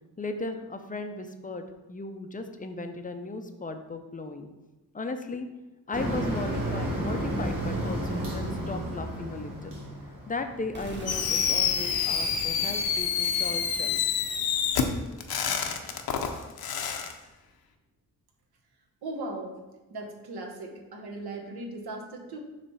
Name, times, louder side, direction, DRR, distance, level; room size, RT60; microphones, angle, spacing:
voice 1, 0.2-4.5 4.9-5.5 5.9-9.8 10.3-14.0, left 3 dB, 20° left, 6 dB, 0.5 m, -36 dB
Motor vehicle (road), 5.9-10.9, right 1 dB, 50° right, 2.4 m, -32 dB
sound 1, 10.7-16.6, equal, 25° right, 1.5 m, -44 dB
Fireworks, 11.1-17.1, left 7 dB, 65° left, 0.8 m, -27 dB
voice 2, 19.0-19.6 19.9-22.4, right 2 dB, 70° right, 1 dB, 1.3 m, -38 dB
7.1 x 3.3 x 5.5 m, 1.1 s
wide cardioid pair, 125°, 40 cm